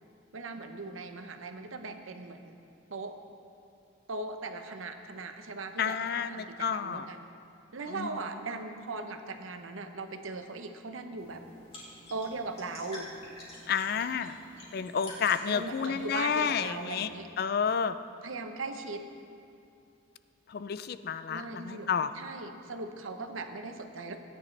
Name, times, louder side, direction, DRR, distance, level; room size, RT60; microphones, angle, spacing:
voice 1, 0.3-2.6 2.9-3.2 4.1-7.2 7.7-11.4 12.1-13.1 15.5-17.3 18.2-19.0 21.3-21.9 22.1-24.2, right 3 dB, 90° right, 7 dB, 0.8 m, -39 dB
voice 2, 5.8-7.1 7.9-8.1 13.7-14.3 14.7-17.1 17.4-17.9 20.5-22.1, left 7 dB, 50° left, 12 dB, 0.4 m, -30 dB
sound 1, 11.2-17.0, left 1 dB, 30° left, 2.8 m, -49 dB
17.0 x 10.0 x 3.3 m, 2.6 s
head